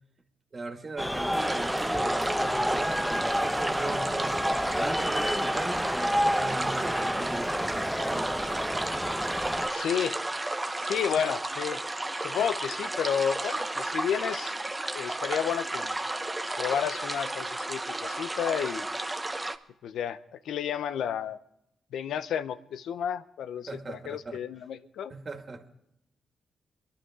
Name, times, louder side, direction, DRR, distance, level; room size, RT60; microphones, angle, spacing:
voice 1, 0.5-4.4 4.8-8.4 9.3-9.4 23.7-24.4 25.1-25.7, right 3 dB, 40° right, 5 dB, 2.1 m, -39 dB
sound 1, 1.0-9.7, equal, 5° left, 0.9 m, -29 dB
sound 2, 1.4-19.6, right 2 dB, 20° right, 1.0 m, -33 dB
voice 2, 9.7-10.2 10.8-11.8 12.2-14.5 14.9-16.0 16.6-18.9 19.8-21.4 21.9-25.1, left 8 dB, 80° left, 13 dB, 0.7 m, -31 dB
22.5 x 11.5 x 3.7 m, 0.80 s
supercardioid pair, 60°, 0 cm